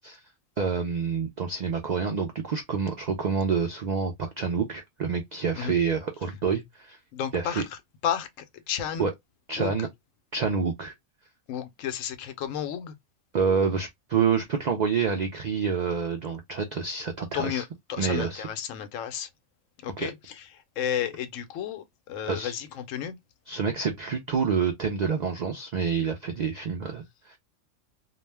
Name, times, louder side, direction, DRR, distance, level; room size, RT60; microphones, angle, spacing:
voice 1, 0.6-7.0 7.3-7.6 9.0-9.1 9.5-9.9 10.3-10.9 13.3-17.6 18.0-18.5 20.0-20.1 22.3-22.5 23.5-27.4, right 6 dB, 80° right, 0.3 m, -27 dB
voice 2, 7.1-7.6 8.0-8.3 8.7-9.1 9.6-9.8 11.5-12.9 17.3-19.3 19.8-20.4 20.8-23.2, left 9 dB, 90° left, 1.0 m, -32 dB
2.4 x 2.1 x 3.2 m
omnidirectional pair, 1.3 m